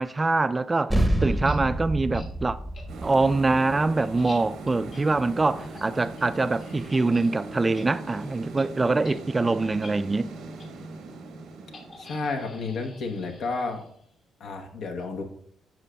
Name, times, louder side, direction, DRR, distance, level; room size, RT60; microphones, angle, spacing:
voice 1, 0.0-2.6 3.0-10.3, right 3 dB, 25° right, 0.3 m, -24 dB
sound 1, 0.9-5.7, right 1 dB, 5° right, 0.7 m, -28 dB
sound 2, 1.2-1.6 2.1-2.3 2.7-2.8 3.3-7.3 7.6-8.3 8.6-8.7 9.0-9.2 9.6-9.9 10.6-10.7 11.7-14.1, left 3 dB, 55° left, 1.5 m, -49 dB
sound 3, 2.9-13.4, right 3 dB, 90° right, 1.1 m, -40 dB
voice 2, 12.0-13.8 14.4-15.2, left 3 dB, 70° left, 0.8 m, -31 dB
10.5 x 5.0 x 2.2 m
cardioid pair, 90°, 0 cm